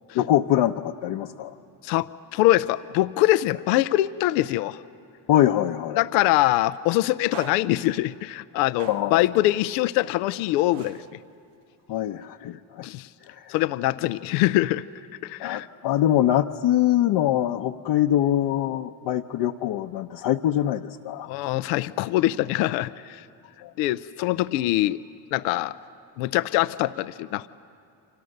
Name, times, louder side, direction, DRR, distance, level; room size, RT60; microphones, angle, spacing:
voice 1, 0.1-1.6 5.3-6.0 8.9-9.2 11.9-12.8 13.2-13.6 15.4-21.3 23.6-23.7, left 12 dB, 60° left, 2 dB, 0.8 m, -23 dB
voice 2, 1.8-4.8 6.0-11.0 12.8-13.1 13.5-14.8 15.2-15.7 21.3-23.3 23.8-25.0 25.3-25.7 26.2-27.5, left 16 dB, 90° left, 14 dB, 0.6 m, -23 dB
sound 1, 6.1-6.3 7.3-8.0 8.8-9.3 10.7-11.5, right 8 dB, 75° right, 1.2 m, -43 dB
30.0 x 25.5 x 6.6 m, 2.5 s
supercardioid pair, 75°, 49 cm